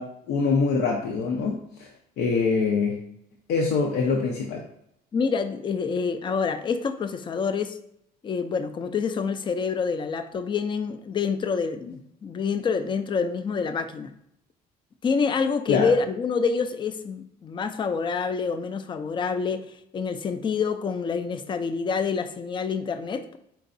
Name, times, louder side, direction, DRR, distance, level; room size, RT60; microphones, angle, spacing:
voice 1, 0.0-1.9 2.2-3.0 3.5-4.6 15.7-15.9, left 4 dB, 75° left, 0 dB, 0.6 m, -24 dB
voice 2, 5.1-7.8 8.2-14.1 15.0-23.4, left 5 dB, 30° left, 9 dB, 0.4 m, -27 dB
4.5 x 3.9 x 2.5 m, 0.76 s
cardioid pair, 110°, 17 cm